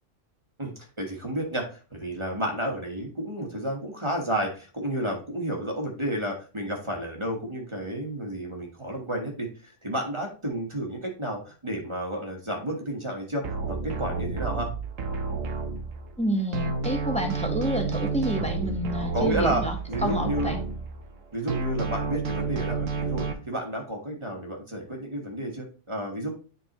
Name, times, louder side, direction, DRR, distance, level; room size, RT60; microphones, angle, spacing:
voice 1, 0.6-14.7 19.1-20.5 21.3-26.3, right 1 dB, 25° right, 1 dB, 1.3 m, -31 dB
sound 1, 13.4-16.2 16.5-21.2 21.5-23.3, right 4 dB, 85° right, 1.3 m, -30 dB
voice 2, 16.2-19.7 20.0-20.6, equal, 5° left, 2 dB, 1.1 m, -28 dB
9.9 x 3.9 x 3.0 m, 0.36 s
omnidirectional pair, 1.3 m